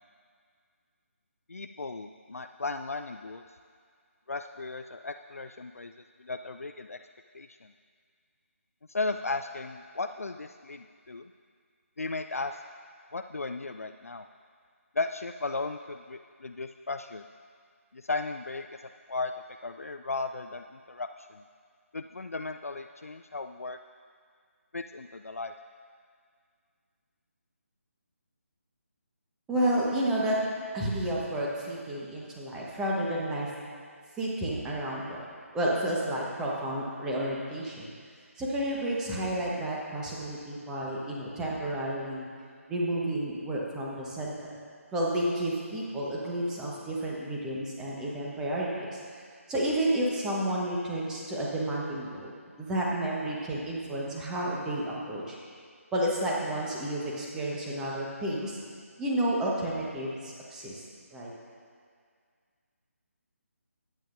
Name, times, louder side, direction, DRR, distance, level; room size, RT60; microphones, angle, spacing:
voice 1, 1.5-3.4 4.3-5.9 6.2-7.0 7.3-7.5 8.9-11.2 12.0-12.6 13.1-14.3 15.0-17.2 17.9-18.7 19.1-19.3 19.6-21.4 21.9-23.8 24.7-25.5, left 3 dB, 75° left, 7 dB, 0.4 m, -35 dB
voice 2, 29.5-30.4 30.7-33.5 34.2-35.2 35.5-37.9 38.4-42.3 42.7-44.3 44.9-49.0 49.5-52.3 52.6-55.4 55.9-58.6 59.0-60.8 61.1-61.3, right 1 dB, 5° right, -4 dB, 1.2 m, -31 dB
21.5 x 9.0 x 2.6 m, 2.1 s
figure-of-eight pair, 150°, 8 cm